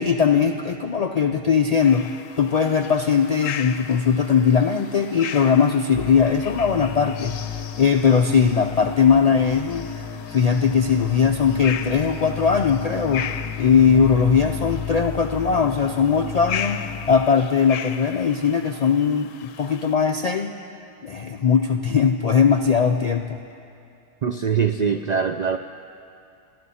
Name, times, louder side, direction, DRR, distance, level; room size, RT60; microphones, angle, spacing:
voice 1, 0.0-10.0 10.3-20.5 21.0-23.4, left 6 dB, 65° left, 5 dB, 0.4 m, -20 dB
sound 1, 1.8-19.9, left 8 dB, 90° left, 1.1 m, -37 dB
sound 2, 5.9-17.2, left 6 dB, 20° left, 0.8 m, -33 dB
voice 2, 24.2-25.6, right 6 dB, 70° right, 8 dB, 0.4 m, -22 dB
29.5 x 11.5 x 4.2 m, 2.5 s
omnidirectional pair, 1.3 m